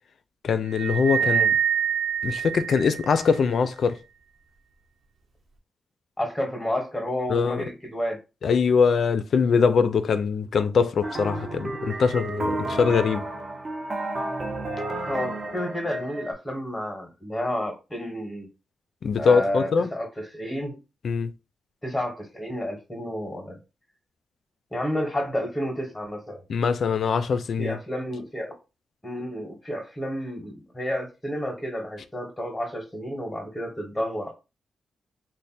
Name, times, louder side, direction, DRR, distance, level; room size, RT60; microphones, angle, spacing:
voice 1, 0.4-1.6 2.2-4.0 7.3-7.6 8.4-13.3 19.0-19.9 21.0-21.3 26.5-27.8, left 5 dB, 60° left, 0.4 m, -22 dB
sound 1, 0.7-3.4, right 8 dB, 65° right, 1.0 m, -25 dB
voice 2, 6.2-8.2 15.1-18.5 19.2-20.8 21.8-23.6 24.7-26.4 27.6-28.5 29.0-34.3, equal, 5° left, 0.9 m, -31 dB
sound 2, 11.0-16.3, right 2 dB, 35° right, 0.7 m, -31 dB
3.2 x 2.1 x 4.1 m
wide cardioid pair, 130°, 0 cm